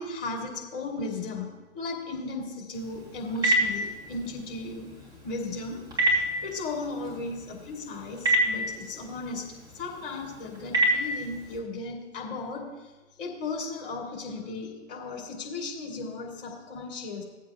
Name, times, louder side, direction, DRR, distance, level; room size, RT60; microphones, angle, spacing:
voice 1, 0.0-5.0 5.2-12.9 13.2-17.2, left 3 dB, 45° left, -2 dB, 3.2 m, -36 dB
Telephone, 2.7-11.6, right 1 dB, 10° right, 3.3 m, -30 dB
17.5 x 8.4 x 2.4 m, 1.1 s
figure-of-eight pair, 110°, 37 cm